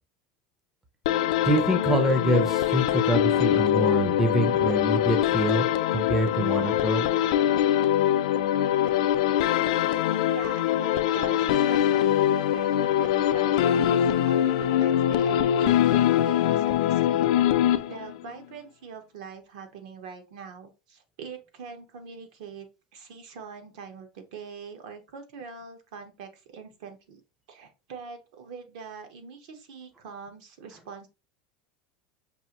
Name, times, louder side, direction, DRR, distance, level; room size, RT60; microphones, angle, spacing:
sound 1, 1.1-18.3, left 11 dB, 75° left, 0.4 m, -23 dB
voice 1, 1.4-5.7 5.9-7.1, right 1 dB, 5° right, 0.5 m, -25 dB
voice 2, 10.2-17.3 17.9-22.7 22.9-27.2 27.5-31.1, right 6 dB, 65° right, 1.0 m, -43 dB
5.4 x 2.5 x 2.9 m
supercardioid pair, 175°, 4 cm